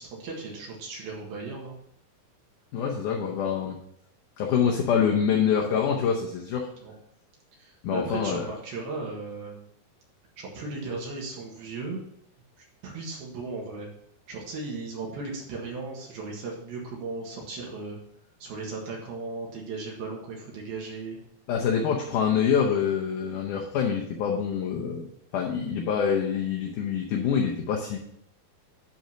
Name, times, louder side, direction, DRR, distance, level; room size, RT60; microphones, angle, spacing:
voice 1, 0.0-1.8 6.8-6.9 7.6-9.7 10.4-12.0 12.8-13.9 14.3-18.0 18.4-21.2, right 3 dB, 75° right, -1 dB, 3.4 m, -36 dB
voice 2, 2.7-3.8 4.4-6.7 7.8-8.5 21.5-25.1 25.3-28.0, left 7 dB, 75° left, 0 dB, 1.9 m, -25 dB
10.5 x 3.9 x 5.6 m, 0.73 s
omnidirectional pair, 4.5 m